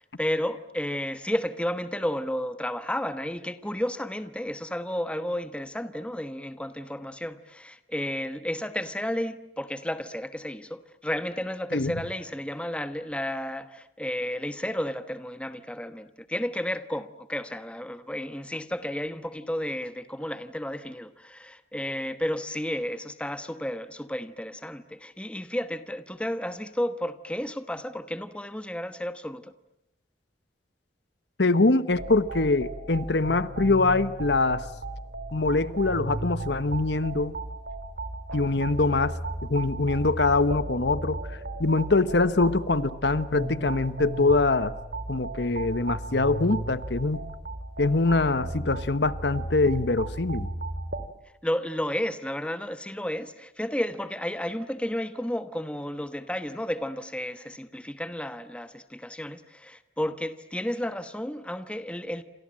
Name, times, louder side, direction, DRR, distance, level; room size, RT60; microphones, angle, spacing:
voice 1, 0.0-29.5 51.4-62.2, left 1 dB, 5° left, 1.1 m, -32 dB
voice 2, 31.4-34.6 35.3-37.3 38.3-39.1 39.4-41.2 41.6-44.7 45.1-47.3 47.8-50.5, left 3 dB, 75° left, 1.1 m, -24 dB
sound 1, 31.9-51.1, right 2 dB, 65° right, 2.4 m, -35 dB
29.0 x 27.0 x 7.6 m
head